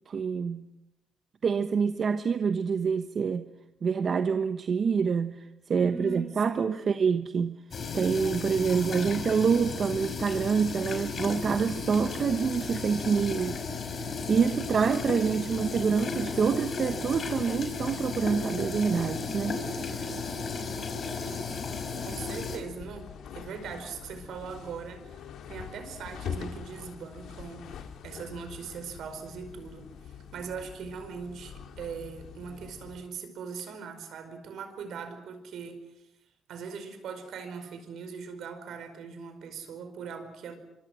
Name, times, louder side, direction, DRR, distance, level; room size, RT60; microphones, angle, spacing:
voice 1, 0.1-0.7 1.4-3.5 3.8-7.6 7.9-13.6 14.0-20.0, right 6 dB, 50° right, 1.1 m, -27 dB
voice 2, 5.8-6.8 22.0-23.1 23.3-35.8 36.5-40.5, right 5 dB, 75° right, 5.0 m, -40 dB
sound 1, 7.7-22.6, left 4 dB, 50° left, 5.1 m, -34 dB
sound 2, 21.4-33.1, left 7 dB, 75° left, 2.3 m, -44 dB
25.5 x 24.5 x 6.3 m
cardioid pair, 90°, 0 cm